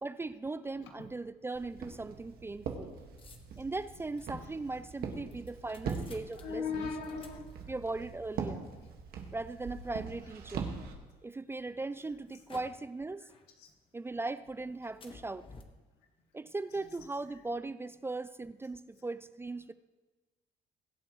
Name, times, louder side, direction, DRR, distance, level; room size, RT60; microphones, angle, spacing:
voice 1, 0.0-3.0 3.6-6.9 7.7-8.7 9.3-10.8 11.2-13.3 13.9-15.5 16.3-19.7, right 3 dB, 15° right, 14 dB, 0.3 m, -39 dB
Walk footsteps, 1.5-10.9, right 6 dB, 65° right, 1.8 m, -42 dB
sound 1, 1.7-10.8 11.4-13.0 13.3-14.1 14.4-15.6, left 4 dB, 30° left, 1.3 m, -57 dB
voice 2, 6.4-7.7 13.6-13.7, left 5 dB, 90° left, 2 dB, 2.0 m, -38 dB
22.0 x 8.4 x 3.1 m, 1.3 s
cardioid pair, 110°, 17 cm